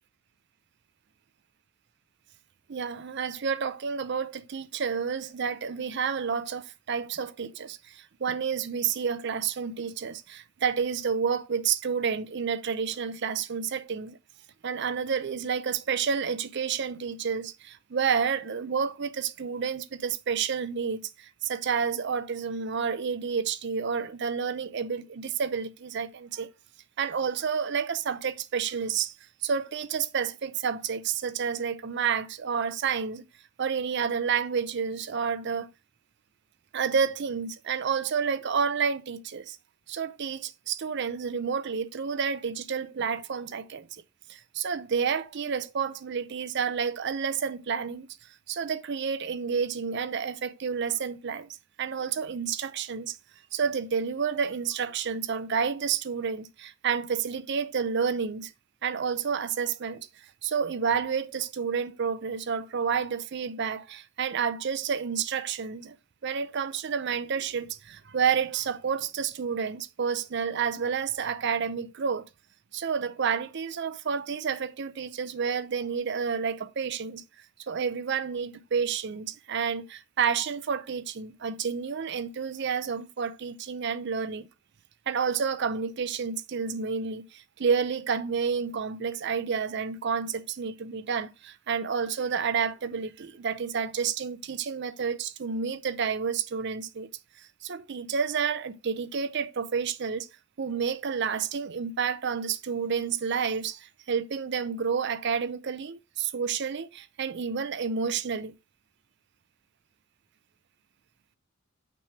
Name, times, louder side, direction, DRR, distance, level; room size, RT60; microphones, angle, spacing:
voice 1, 2.7-14.2 14.6-26.5 27.0-29.1 29.4-33.2 33.6-35.7 36.7-39.6 39.9-43.9 44.3-48.1 48.5-51.5 51.8-53.2 53.5-58.5 58.8-60.1 60.4-66.0 66.2-72.2 72.7-77.2 77.7-84.5 85.1-97.1 97.4-100.3 100.6-108.5, right 6 dB, 60° right, 0.5 m, -30 dB
6.1 x 3.3 x 5.6 m
head